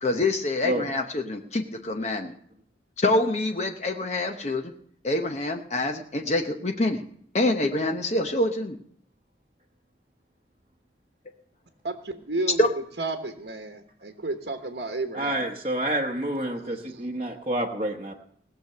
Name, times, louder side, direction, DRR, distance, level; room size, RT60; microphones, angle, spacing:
voice 1, 0.0-2.3 3.0-4.7 5.0-7.0 7.3-8.8 12.6-12.7, left 2 dB, 35° left, 4 dB, 0.8 m, -26 dB
voice 2, 11.8-12.7 13.0-15.4 16.6-17.0, right 2 dB, 70° right, 4 dB, 1.2 m, -32 dB
voice 3, 15.1-18.1, right 1 dB, 30° right, -1 dB, 1.0 m, -28 dB
19.0 x 6.7 x 6.7 m, 0.65 s
head